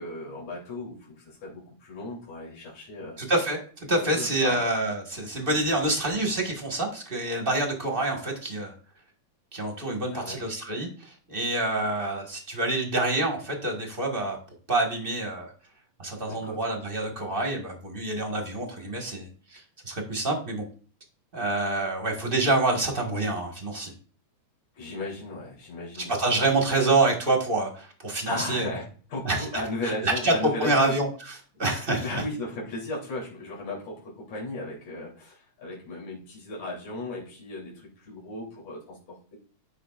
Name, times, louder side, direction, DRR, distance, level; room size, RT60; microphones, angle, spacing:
voice 1, 0.0-3.2 4.0-4.7 10.1-10.5 16.3-16.8 18.8-18.9 24.7-26.2 28.3-31.0 31.6-39.4, left 2 dB, 75° left, -4 dB, 4.6 m, -36 dB
voice 2, 3.2-8.7 9.5-14.4 14.7-15.5 16.0-20.6 21.3-23.9 26.1-28.8 29.2-32.2, right 2 dB, 25° right, 0 dB, 1.4 m, -27 dB
15.0 x 5.6 x 2.5 m, 0.42 s
omnidirectional pair, 3.3 m